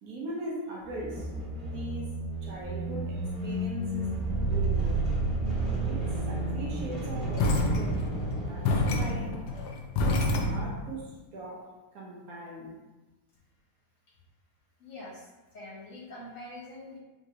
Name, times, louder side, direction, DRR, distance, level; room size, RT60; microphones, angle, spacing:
voice 1, 0.0-1.3 1.7-4.1 4.5-5.0 5.9-8.0 8.4-9.4 10.0-12.8, right 1 dB, 65° right, -3 dB, 1.2 m, -40 dB
sound 1, 0.9-9.6, right 2 dB, 30° right, 1.2 m, -31 dB
sound 2, 7.4-10.9, left 2 dB, 80° left, 1.2 m, -28 dB
voice 2, 14.8-17.0, left 1 dB, 55° left, -5 dB, 1.2 m, -45 dB
5.5 x 3.0 x 2.4 m, 1.1 s
omnidirectional pair, 1.8 m